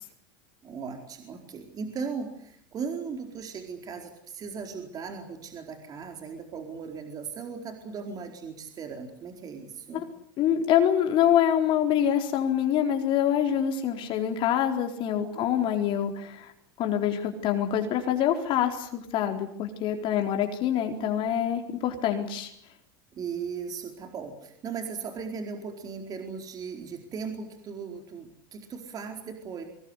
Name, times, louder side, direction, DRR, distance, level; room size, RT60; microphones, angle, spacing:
voice 1, 0.6-10.0 15.2-15.5 23.1-29.6, right 5 dB, 35° right, 4 dB, 4.5 m, -37 dB
voice 2, 10.4-16.5 16.8-22.5, left 10 dB, 45° left, 4 dB, 4.1 m, -25 dB
24.5 x 21.0 x 10.0 m, 0.70 s
supercardioid pair, 115°, 12 cm